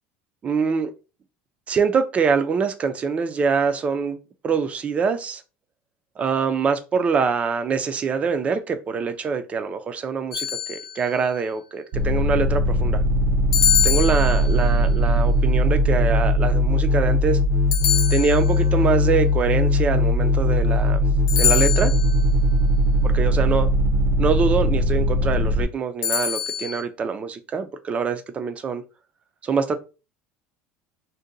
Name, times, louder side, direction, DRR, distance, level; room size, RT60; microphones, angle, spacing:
voice 1, 0.4-0.9 1.7-4.2 4.4-5.4 6.2-13.0 13.8-17.4 18.1-21.0 21.4-21.9 23.1-23.7 24.2-28.8 29.4-29.8, right 5 dB, 25° right, 0.4 m, -24 dB
sound 1, 10.3-11.2 13.5-14.8 17.7-18.8 21.3-22.2 26.0-26.8, left 10 dB, 80° left, 0.7 m, -24 dB
sound 2, 11.9-25.6, left 1 dB, 60° right, 0.7 m, -20 dB
2.7 x 2.2 x 3.8 m
cardioid pair, 135°, 5 cm